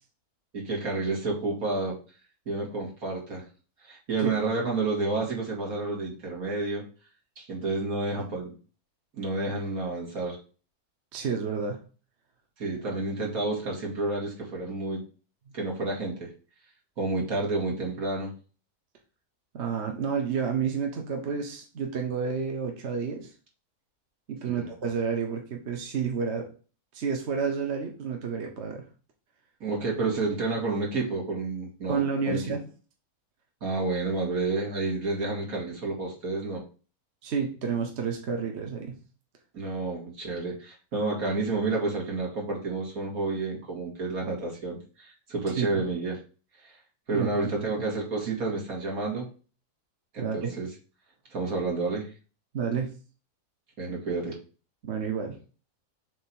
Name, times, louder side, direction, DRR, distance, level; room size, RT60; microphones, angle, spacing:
voice 1, 0.5-2.0 2.5-3.4 3.8-6.8 7.4-8.6 9.1-10.4 12.6-15.0 15.5-16.3 17.0-18.3 24.5-24.7 29.6-32.0 32.3-32.4 33.6-36.6 39.5-46.2 46.6-46.7 47.1-49.3 50.1-50.7 51.3-52.1 53.8-54.4, right 3 dB, 70° right, -2 dB, 2.5 m, -30 dB
voice 2, 11.1-11.8 12.8-13.0 19.5-23.3 24.3-26.5 26.9-28.9 31.9-32.6 37.2-39.0 45.6-45.8 47.1-47.7 50.2-50.6 52.5-52.9 54.8-55.4, right 6 dB, 50° right, 2 dB, 1.2 m, -30 dB
7.1 x 3.4 x 4.4 m, 0.37 s
omnidirectional pair, 1.6 m